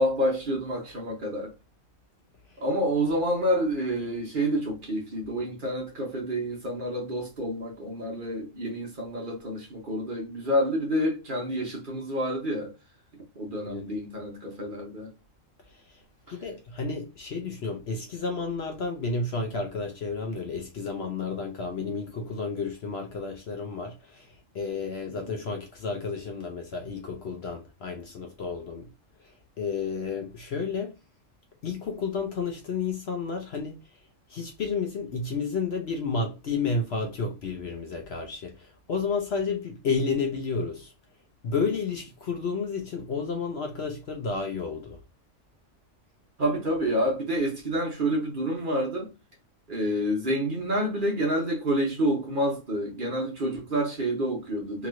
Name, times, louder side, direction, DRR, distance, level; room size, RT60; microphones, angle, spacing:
voice 1, 0.0-1.5 2.6-12.7 13.3-15.1 21.8-21.9 25.2-25.4 46.4-49.1 49.7-54.9, equal, 40° right, 1.1 m, -28 dB
voice 2, 16.3-28.9 29.6-30.9 31.6-33.8 34.3-40.9 41.4-45.0, left 4 dB, 60° left, 0.8 m, -31 dB
2.9 x 2.9 x 2.4 m
omnidirectional pair, 1.4 m